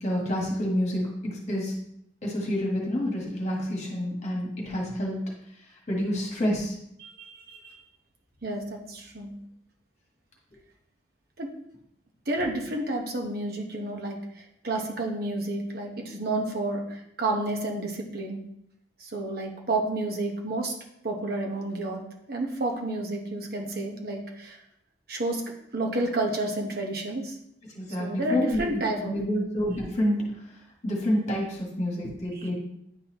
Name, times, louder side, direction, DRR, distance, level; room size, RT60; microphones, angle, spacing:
voice 1, 0.0-1.7 2.2-5.2 5.9-6.7 27.7-30.2 30.8-32.5, equal, 40° left, -2 dB, 1.6 m, -28 dB
voice 2, 7.0-7.8 8.4-9.3 11.4-11.5 12.3-14.2 14.6-18.5 19.0-20.7 21.0-22.0 22.3-24.6 25.1-25.4 25.7-27.4 28.0-29.2 32.3-32.5, right 2 dB, 55° right, 1 dB, 1.1 m, -30 dB
9.8 x 4.1 x 3.0 m, 0.77 s
head